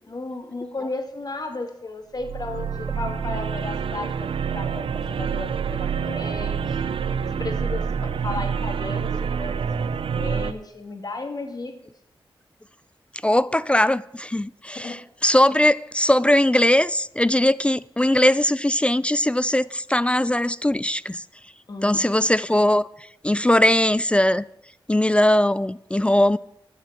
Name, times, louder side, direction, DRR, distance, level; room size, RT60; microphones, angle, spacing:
voice 1, 0.0-6.8 7.4-11.8 14.7-15.0 21.7-22.3, left 2 dB, 45° left, 2.0 m, -34 dB
sound 1, 2.2-10.5, right 6 dB, 80° right, 0.5 m, -27 dB
voice 2, 13.2-21.2 21.8-24.4 24.9-26.4, left 1 dB, 10° left, 0.3 m, -20 dB
9.6 x 7.3 x 7.3 m
cardioid pair, 65°, 9 cm